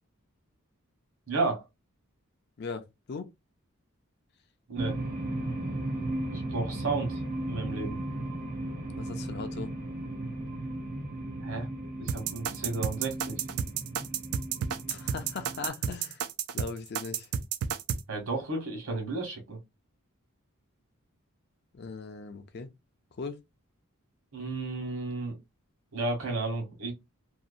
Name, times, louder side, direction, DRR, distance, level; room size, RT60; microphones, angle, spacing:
voice 1, 1.3-1.6 4.7-4.9 6.3-7.2 7.5-8.0 11.4-11.7 12.0-13.4 18.1-19.6 24.3-25.4 25.9-26.9, right 3 dB, 70° right, 1.2 m, -32 dB
voice 2, 2.6-3.3 8.6-9.7 14.9-16.2 16.5-17.3 21.7-22.7 23.2-23.4, left 4 dB, 50° left, 0.4 m, -39 dB
sound 1, 4.7-15.7, right 1 dB, 40° right, 0.6 m, -36 dB
sound 2, 12.1-18.0, right 8 dB, 85° right, 0.3 m, -31 dB
2.7 x 2.0 x 2.4 m
head